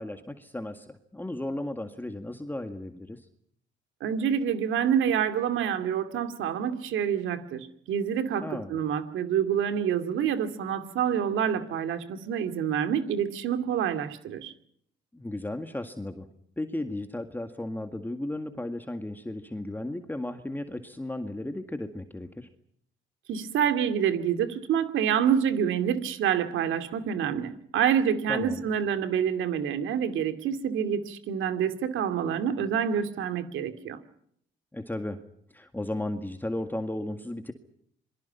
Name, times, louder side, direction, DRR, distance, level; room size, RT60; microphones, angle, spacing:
voice 1, 0.0-3.3 8.4-8.8 15.1-16.3 16.6-22.5 28.3-28.6 34.7-35.2 35.5-37.5, left 1 dB, 10° left, 7 dB, 2.0 m, -35 dB
voice 2, 4.0-14.5 23.3-34.0, right 8 dB, 85° right, 9 dB, 2.5 m, -27 dB
27.0 x 23.5 x 5.8 m, 0.68 s
cardioid pair, 90°, 20 cm